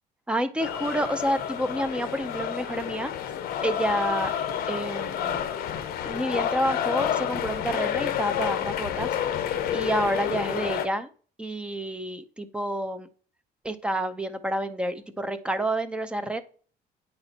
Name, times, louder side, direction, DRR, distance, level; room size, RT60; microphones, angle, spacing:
voice 1, 0.3-3.1 3.6-4.3 4.7-5.4 6.0-11.1 11.4-13.1 13.6-16.4, right 1 dB, 5° right, 10 dB, 0.4 m, -29 dB
sound 1, 0.6-10.9, left 9 dB, 60° left, 0.7 m, -29 dB
8.9 x 4.3 x 4.1 m, 0.41 s
cardioid pair, 170°, 17 cm